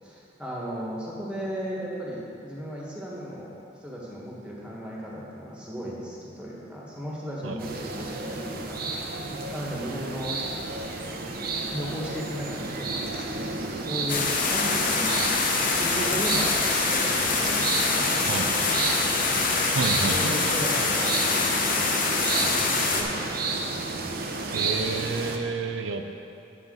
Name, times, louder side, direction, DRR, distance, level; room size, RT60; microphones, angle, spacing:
voice 1, 0.0-3.5 3.8-8.8 9.5-10.4 11.7-16.6 16.9-19.4 19.9-23.8, equal, 5° right, -6 dB, 1.6 m, -36 dB
sound 1, 7.6-25.4, right 3 dB, 55° right, 0.7 m, -32 dB
sound 2, 14.1-23.0, left 4 dB, 50° left, 0.8 m, -25 dB
voice 2, 19.7-20.5 24.5-26.0, right 4 dB, 90° right, 6 dB, 0.5 m, -29 dB
9.3 x 7.1 x 3.9 m, 2.7 s
head